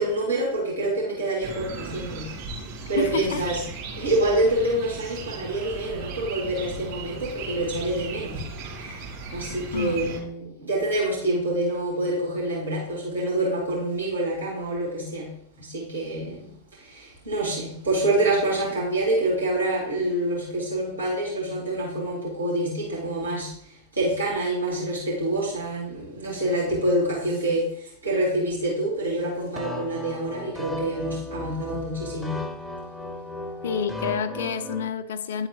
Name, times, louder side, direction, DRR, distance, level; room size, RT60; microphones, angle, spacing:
voice 1, 0.0-2.4 2.9-3.6 4.0-8.4 8.7-16.5 16.8-23.6 23.9-32.5, right 1 dB, 80° right, 2.2 m, -27 dB
sound 1, 1.4-10.2, right 3 dB, 40° right, 2.2 m, -37 dB
voice 2, 3.0-3.4 9.7-10.1 33.6-35.5, left 6 dB, 60° left, 0.5 m, -29 dB
sound 2, 29.6-34.9, left 1 dB, 5° left, 0.7 m, -35 dB
10.0 x 4.0 x 2.9 m
figure-of-eight pair, 90°, 0 cm